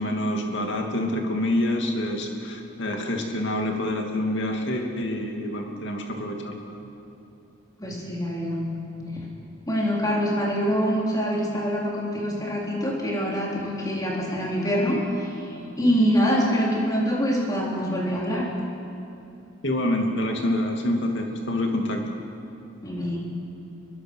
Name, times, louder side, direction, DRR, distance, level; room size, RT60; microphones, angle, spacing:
voice 1, 0.0-6.9 19.6-22.2, left 1 dB, 55° left, 2 dB, 2.6 m, -27 dB
voice 2, 7.8-8.7 9.7-18.5 22.8-23.2, equal, 15° left, -3 dB, 3.9 m, -25 dB
23.0 x 22.0 x 6.4 m, 2.8 s
head